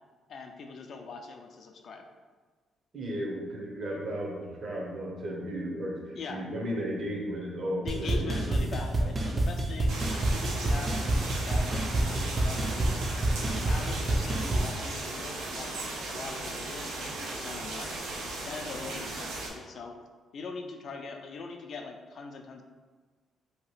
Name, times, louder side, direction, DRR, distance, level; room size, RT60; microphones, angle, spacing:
voice 1, 0.3-2.0 6.1-6.4 7.8-13.0 13.4-17.9 18.5-20.0 20.3-22.6, left 4 dB, 60° left, 4 dB, 0.3 m, -42 dB
voice 2, 2.9-8.6, equal, 50° right, -1 dB, 0.7 m, -35 dB
sound 1, 7.9-14.7, right 1 dB, 30° right, 0.4 m, -28 dB
Rain on city deck, 9.9-19.5, right 2 dB, 85° right, 0.5 m, -37 dB
2.8 x 2.3 x 3.1 m, 1.4 s
cardioid pair, 90°, 0 cm